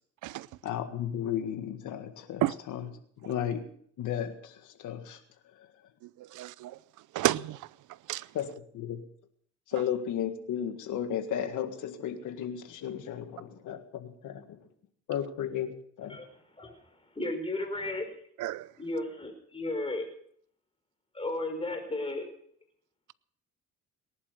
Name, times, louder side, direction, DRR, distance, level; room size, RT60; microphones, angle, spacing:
voice 1, 0.6-2.4 2.7-2.8 3.2-3.7 4.0-5.2 8.3-8.5 8.7-9.0 9.7-14.6 15.1-16.2, left 9 dB, 80° left, 1.8 m, -34 dB
voice 2, 6.0-6.8 7.1-7.7 8.1-8.3 18.4-18.7, right 16 dB, 85° right, 0.7 m, -31 dB
voice 3, 16.0-18.1 18.8-20.1 21.1-22.3, left 2 dB, 20° left, 5.0 m, -35 dB
19.0 x 11.0 x 6.4 m
cardioid pair, 90°, 30 cm